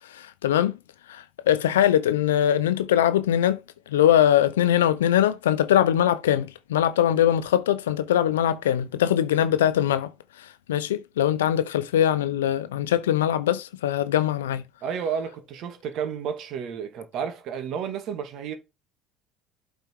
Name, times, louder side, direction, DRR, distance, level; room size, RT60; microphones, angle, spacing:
voice 1, 0.1-0.8 1.1-3.6 3.9-10.1 10.7-14.6, left 11 dB, 90° left, 0.7 m, -22 dB
voice 2, 14.8-18.5, right 7 dB, 60° right, 2.1 m, -31 dB
8.0 x 4.6 x 4.7 m
hypercardioid pair, 75°, 0 cm